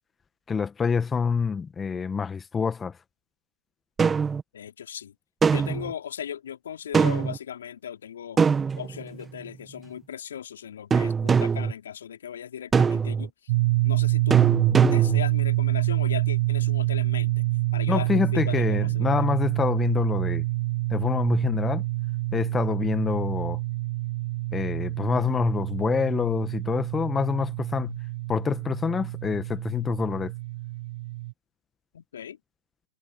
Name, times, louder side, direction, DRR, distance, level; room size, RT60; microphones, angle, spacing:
voice 1, 0.5-2.9 17.9-20.4 20.9-21.8 22.3-23.6 24.5-28.0 28.3-30.3, left 5 dB, 20° left, 1.6 m, -26 dB
sound 1, 4.0-4.4 5.4-5.9 6.9-7.4 8.4-9.2 10.9-11.7 12.7-13.3 14.3-15.3, right 6 dB, 20° right, 1.6 m, -22 dB
voice 2, 4.5-5.1 5.5-8.4 8.8-13.3 13.8-14.4 14.9-17.5 17.7-19.1 31.9-32.4, left 9 dB, 70° left, 3.7 m, -37 dB
sound 2, 13.5-31.3, right 19 dB, 55° right, 1.3 m, -27 dB
figure-of-eight pair, 95°, 0 cm